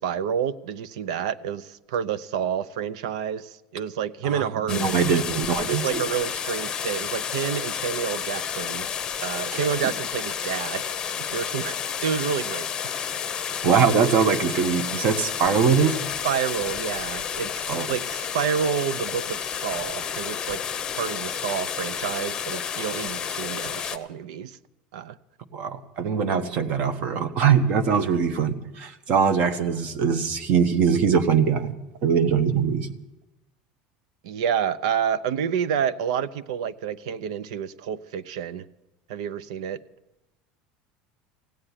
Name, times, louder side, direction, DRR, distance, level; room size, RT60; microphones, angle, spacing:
voice 1, 0.0-5.2 5.6-8.9 9.2-12.7 16.2-20.6 20.9-24.6 24.9-25.2 34.2-38.6 39.1-39.8, right 8 dB, 90° right, 0.6 m, -29 dB
voice 2, 4.2-6.0 9.5-9.6 13.6-16.0 17.7-17.9 25.5-31.7 32.0-32.9, right 6 dB, 45° right, 1.1 m, -22 dB
sound 1, 4.7-24.0, left 8 dB, 20° left, 0.8 m, -31 dB
16.5 x 8.8 x 9.8 m
cardioid pair, 155°, 3 cm